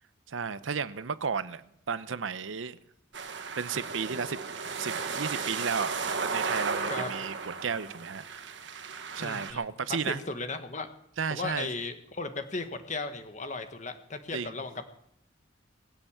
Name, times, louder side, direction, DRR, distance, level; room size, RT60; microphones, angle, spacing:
voice 1, 0.3-1.6 1.9-2.8 3.6-4.4 4.8-6.0 6.2-8.6 9.1-10.2 11.2-11.7 14.3-14.5, right 6 dB, 85° right, 0.7 m, -33 dB
sound 1, 3.1-9.5, right 4 dB, 70° right, 1.3 m, -35 dB
voice 2, 9.2-10.9 11.3-14.9, left 3 dB, 40° left, 1.3 m, -36 dB
22.0 x 7.9 x 7.3 m
head